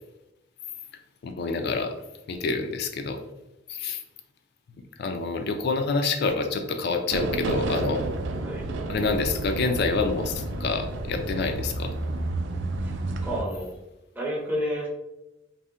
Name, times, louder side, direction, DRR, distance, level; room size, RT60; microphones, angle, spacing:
voice 1, 1.2-1.9 2.3-3.2 3.7-4.0 5.0-8.0 8.9-11.9, left 4 dB, 55° left, 7 dB, 0.4 m, -27 dB
sound 1, 7.1-13.4, right 2 dB, 65° right, 0.3 m, -30 dB
voice 2, 13.2-13.8 14.1-14.9, equal, 10° right, -4 dB, 0.5 m, -30 dB
2.7 x 2.1 x 3.5 m, 0.92 s
head